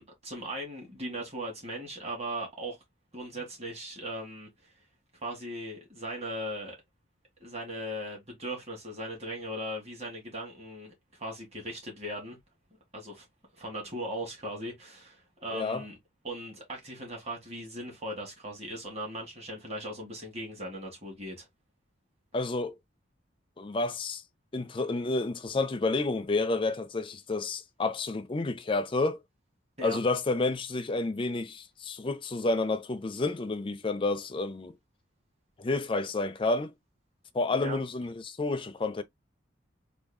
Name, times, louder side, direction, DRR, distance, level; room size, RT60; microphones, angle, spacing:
voice 1, 0.0-2.8 3.1-4.5 5.2-6.8 7.4-12.4 12.9-13.3 13.6-16.0 16.2-21.5 29.8-30.0 37.5-37.8, right 1 dB, 35° right, 1.8 m, -38 dB
voice 2, 15.5-15.8 22.3-22.7 23.6-24.2 24.5-29.2 29.8-34.7 35.6-36.7 37.3-39.0, left 3 dB, 25° left, 0.4 m, -30 dB
3.5 x 2.3 x 3.5 m
head